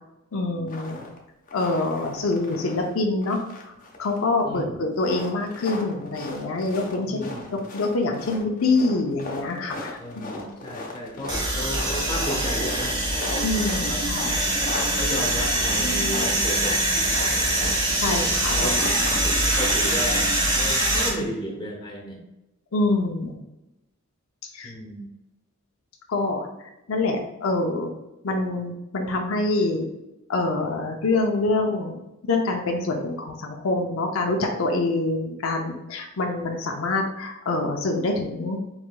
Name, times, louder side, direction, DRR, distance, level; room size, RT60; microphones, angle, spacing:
voice 1, 0.3-1.0 1.5-3.4 4.0-10.3 13.4-14.3 17.9-18.9 22.7-23.3 24.5-24.7 26.1-26.5 26.9-27.9 28.2-29.9 30.3-32.0 32.3-38.6, left 2 dB, 75° left, 2 dB, 0.6 m, -25 dB
sound 1, 0.7-1.2 1.5-2.9 3.2-4.4 4.9-19.8, left 2 dB, 40° left, 0.8 m, -37 dB
voice 2, 4.4-4.8 7.1-7.5 10.0-13.0 13.8-14.6 15.0-16.8 17.1-17.5 18.5-22.2 24.6-25.0, equal, 20° left, -1 dB, 1.0 m, -34 dB
sound 2, 11.3-21.1, right 1 dB, 20° right, 1.0 m, -23 dB
4.7 x 3.9 x 2.2 m, 0.93 s
head